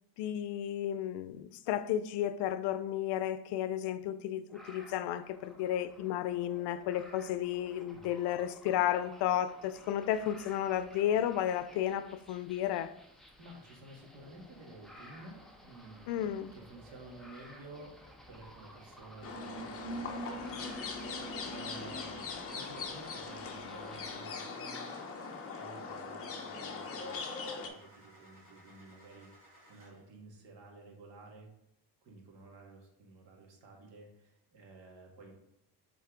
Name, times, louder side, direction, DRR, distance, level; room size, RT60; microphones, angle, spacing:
voice 1, 0.2-12.9 16.1-16.5, left 11 dB, 85° left, 0.5 m, -33 dB
sound 1, 4.5-24.2, equal, ahead, 0.3 m, -55 dB
voice 2, 13.4-18.0 18.3-20.4 20.9-25.0 25.5-31.5 32.0-35.3, right 2 dB, 70° right, 1.8 m, -53 dB
sound 2, 19.2-27.7, left 3 dB, 35° left, 0.8 m, -40 dB
Car / Engine starting, 20.9-30.1, right 1 dB, 30° right, 2.4 m, -60 dB
7.8 x 3.6 x 3.7 m
cardioid pair, 165°, 40 cm